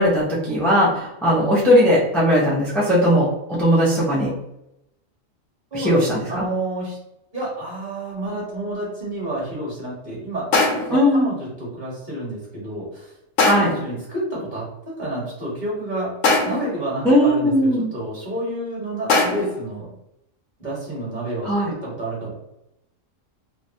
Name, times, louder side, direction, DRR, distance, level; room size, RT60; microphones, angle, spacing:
voice 1, 0.0-4.3 5.7-6.4 10.9-11.3 13.4-13.7 17.0-17.9 21.4-21.7, equal, ahead, -6 dB, 0.3 m, -18 dB
voice 2, 5.7-7.0 7.3-10.5 10.9-13.1 13.6-16.1 16.4-19.9 20.6-22.3, right 1 dB, 35° right, -6 dB, 1.2 m, -29 dB
sound 1, 8.2-8.3 10.5-11.1 13.4-13.9 16.2-16.8 19.1-19.7, left 3 dB, 75° left, 0.9 m, -20 dB
3.0 x 2.1 x 2.6 m, 0.84 s
omnidirectional pair, 1.4 m